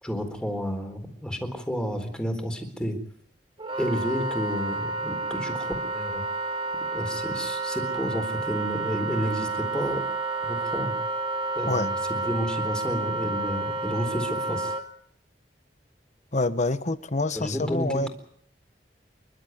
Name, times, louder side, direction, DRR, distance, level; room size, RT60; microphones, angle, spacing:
voice 1, 0.0-3.0 3.8-6.2 6.9-10.0 10.4-10.9 11.5-14.7 17.3-18.1, equal, 5° left, 4.1 m, -31 dB
Wind instrument woodwind instrument, 3.6-14.8, right 3 dB, 30° right, 2.3 m, -30 dB
voice 2, 16.3-18.1, left 2 dB, 45° left, 1.2 m, -26 dB
29.0 x 12.5 x 9.4 m
head